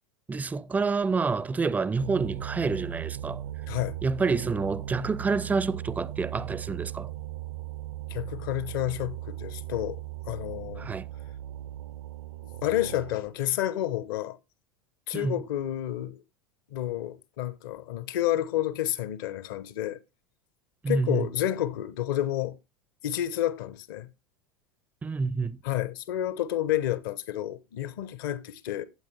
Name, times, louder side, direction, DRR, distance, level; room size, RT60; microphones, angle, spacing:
voice 1, 0.3-3.4 4.0-7.1 10.8-11.1 15.1-15.3 20.8-21.3 25.0-25.6, right 4 dB, 10° right, 0.5 m, -28 dB
sound 1, 2.0-13.3, right 13 dB, 65° right, 0.6 m, -38 dB
voice 2, 8.1-10.0 10.3-10.9 12.6-14.4 15.1-16.2 16.7-20.0 20.9-22.6 23.0-24.1 25.6-28.8, left 13 dB, 60° left, 1.0 m, -30 dB
12.5 x 8.2 x 3.4 m
figure-of-eight pair, 80°, 13 cm